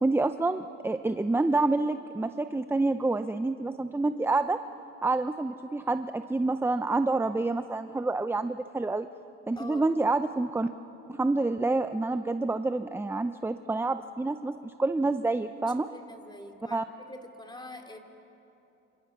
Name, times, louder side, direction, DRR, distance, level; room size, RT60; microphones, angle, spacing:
voice 1, 0.0-4.6 5.0-9.1 9.5-10.7 11.1-15.9 16.7-16.8, right 2 dB, 10° right, 10 dB, 0.6 m, -28 dB
voice 2, 9.5-9.9 15.9-16.8 17.1-18.0, left 1 dB, 15° left, 4 dB, 2.9 m, -44 dB
27.5 x 27.0 x 6.0 m, 3.0 s
cardioid pair, 90°, 30 cm